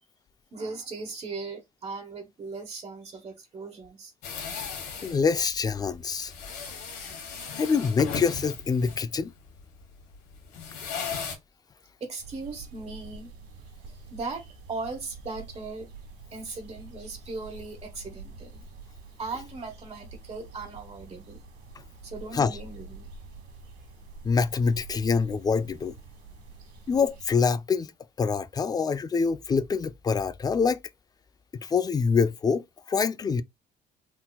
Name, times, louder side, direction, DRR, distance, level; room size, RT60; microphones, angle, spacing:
voice 1, 0.5-4.1 12.0-13.3 13.9-15.9 16.3-18.6 19.2-21.4 22.0-23.1, right 3 dB, 40° right, 1.2 m, -38 dB
sound 1, 4.2-11.4, left 6 dB, 85° left, 1.4 m, -37 dB
voice 2, 5.0-6.3 7.6-9.3 22.3-22.6 24.2-26.0 26.9-27.9 28.2-30.8 31.6-33.4, left 5 dB, 25° left, 0.3 m, -25 dB
sound 2, 12.2-27.3, right 3 dB, 75° right, 1.6 m, -47 dB
3.8 x 2.8 x 2.3 m
cardioid pair, 110°, 17 cm